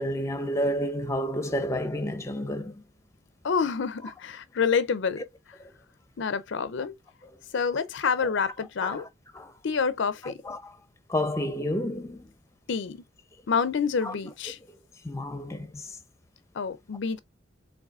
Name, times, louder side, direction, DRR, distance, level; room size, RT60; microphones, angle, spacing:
voice 1, 0.0-2.8 8.8-9.1 9.3-9.5 10.2-10.8 11.1-12.3 14.0-14.1 15.0-16.0, equal, 15° left, 0.6 m, -30 dB
voice 2, 3.4-5.2 6.2-6.9 7.5-9.1 9.6-10.4 12.7-13.0 13.5-14.6 16.5-17.2, left 5 dB, 65° left, 0.5 m, -27 dB
4.8 x 3.7 x 2.4 m
head